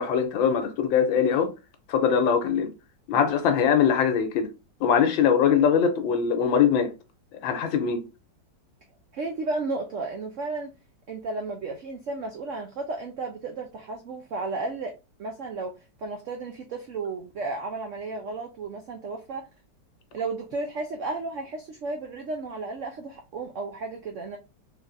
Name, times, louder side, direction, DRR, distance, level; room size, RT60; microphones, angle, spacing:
voice 1, 0.0-1.5 1.9-2.7 3.1-4.5 4.8-6.9 7.4-8.0, left 7 dB, 90° left, 1.5 m, -22 dB
voice 2, 9.1-10.7 11.1-19.5 20.1-24.4, right 3 dB, 90° right, 0.6 m, -33 dB
3.9 x 3.4 x 2.5 m
omnidirectional pair, 2.1 m